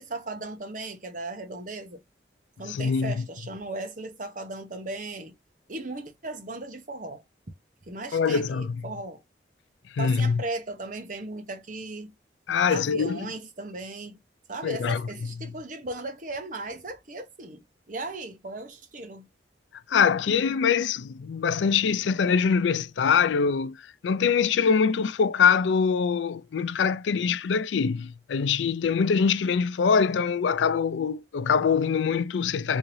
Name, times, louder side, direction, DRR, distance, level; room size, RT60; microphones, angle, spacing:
voice 1, 0.0-2.0 2.6-5.3 5.7-7.2 7.9-9.2 10.0-12.1 12.7-14.2 14.5-19.3, right 2 dB, 45° right, 1.0 m, -37 dB
voice 2, 2.7-3.2 8.1-8.8 9.9-10.4 12.5-13.3 14.6-15.0 19.9-23.8 24.0-32.8, left 6 dB, 90° left, 0.4 m, -24 dB
3.6 x 3.1 x 2.7 m
head